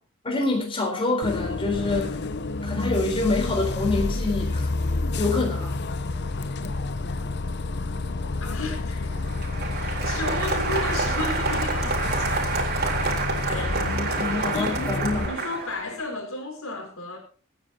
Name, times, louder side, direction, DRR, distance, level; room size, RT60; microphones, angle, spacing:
voice 1, 0.2-2.2 2.6-4.7 5.2-5.8 13.5-15.4, left 3 dB, 25° left, 3.8 m, -26 dB
Bus, 1.2-15.3, left 2 dB, 55° left, 0.8 m, -29 dB
voice 2, 8.4-12.3 13.5-13.8 14.1-14.8 15.2-17.2, left 2 dB, 80° left, 4.4 m, -34 dB
Applause, 9.1-16.0, right 4 dB, 50° right, 3.7 m, -28 dB
24.5 x 9.4 x 2.9 m
head